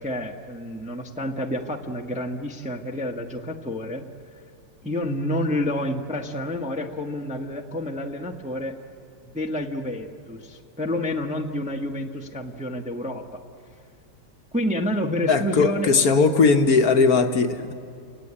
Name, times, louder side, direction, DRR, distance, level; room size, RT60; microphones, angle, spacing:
voice 1, 0.0-4.1 4.8-8.8 9.2-13.4 14.5-16.4, left 1 dB, 5° right, 2 dB, 0.8 m, -29 dB
voice 2, 15.3-17.7, left 4 dB, 55° left, 6 dB, 1.3 m, -19 dB
29.0 x 17.0 x 9.8 m, 2.4 s
omnidirectional pair, 2.0 m